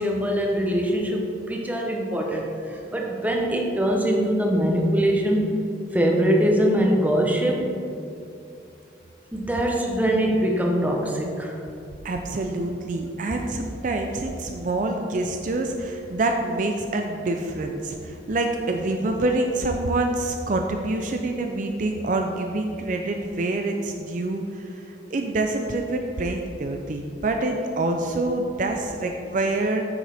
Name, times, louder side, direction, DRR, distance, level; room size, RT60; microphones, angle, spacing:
voice 1, 0.0-5.4 5.9-7.7 9.3-11.7, equal, 10° right, 0 dB, 0.7 m, -23 dB
voice 2, 12.0-29.9, right 2 dB, 45° right, 3 dB, 0.4 m, -26 dB
8.7 x 6.4 x 3.4 m, 2.6 s
head